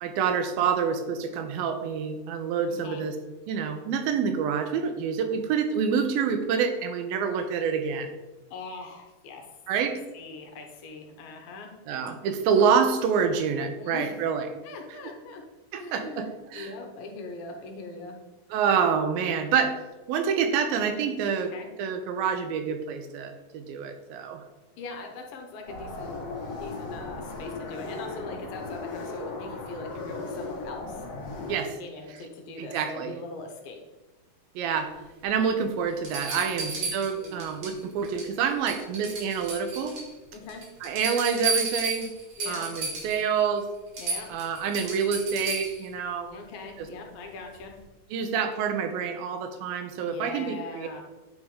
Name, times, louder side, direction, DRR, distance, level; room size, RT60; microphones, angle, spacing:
voice 1, 0.0-3.2 3.5-8.1 9.7-10.0 11.9-14.5 15.7-16.7 18.5-19.7 20.1-21.5 21.8-24.4 31.5-31.8 32.6-33.2 34.6-34.9 35.2-40.0 40.8-42.1 42.5-43.7 44.3-46.3 46.8-46.9 48.1-50.9, right 6 dB, 85° right, 7 dB, 2.5 m, -27 dB
voice 2, 2.7-3.0 8.5-9.5 9.8-11.7 13.7-14.1 14.6-15.4 15.8-18.2 21.5-21.7 24.8-26.1 26.6-31.1 31.8-33.8 36.6-37.5 40.3-40.6 42.4-42.7 44.0-44.3 46.3-47.7 50.0-51.0, left 3 dB, 80° left, 3 dB, 2.6 m, -41 dB
sound 1, 25.7-31.5, left 3 dB, 60° left, 2.3 m, -37 dB
sound 2, 35.3-35.4 36.0-37.8 38.0-38.4 38.7-40.1 40.5-43.2 43.6-43.7 43.9-45.9 47.5-47.6, right 4 dB, 55° right, 3.6 m, -32 dB
9.3 x 3.6 x 4.8 m, 1.1 s
omnidirectional pair, 4.2 m